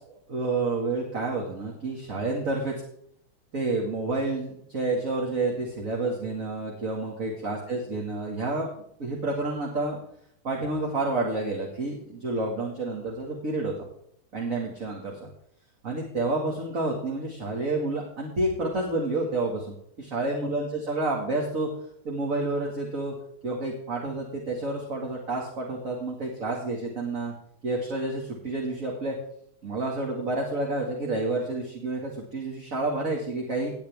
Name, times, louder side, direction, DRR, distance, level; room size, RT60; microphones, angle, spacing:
voice 1, 0.0-2.7 3.5-8.7 9.0-10.0 10.4-13.7 14.3-15.3 15.8-21.7 22.0-23.1 23.4-27.3 27.6-29.2 29.6-33.7, right 2 dB, 40° right, -2 dB, 2.4 m, -29 dB
18.5 x 8.7 x 3.5 m, 0.69 s
omnidirectional pair, 2.3 m